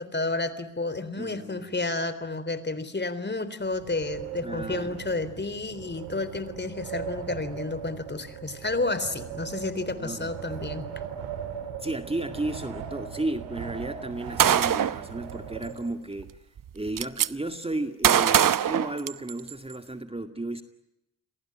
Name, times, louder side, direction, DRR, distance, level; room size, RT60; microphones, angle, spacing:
voice 1, 0.0-10.9, left 3 dB, 25° left, 15 dB, 3.7 m, -31 dB
voice 2, 1.2-1.7 4.4-5.0 9.9-10.3 11.8-16.3 16.7-20.6, right 2 dB, 15° right, 8 dB, 2.1 m, -33 dB
Wind, 3.6-16.2, right 8 dB, 90° right, 4.6 m, -39 dB
Gunshot gunfire, 14.4-15.0 16.2-16.3 16.6-17.3 18.0-19.5, right 9 dB, 50° right, 1.1 m, -22 dB
29.5 x 23.0 x 8.8 m, 0.87 s
supercardioid pair, 55°, 42 cm